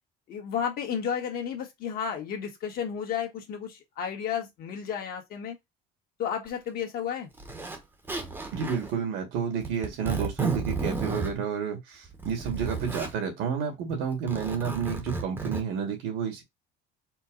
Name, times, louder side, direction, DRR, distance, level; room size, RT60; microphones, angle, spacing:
voice 1, 0.3-5.6 6.2-7.3, left 8 dB, 50° left, 1.4 m, -32 dB
Zipper (clothing), 6.5-6.6 7.4-7.8 8.1-8.9 9.6-11.3 12.1-13.1 14.1-15.6, right 3 dB, 10° right, 0.9 m, -33 dB
voice 2, 8.5-16.4, right 7 dB, 80° right, 2.1 m, -30 dB
4.5 x 2.2 x 3.8 m
cardioid pair, 150°, 20 cm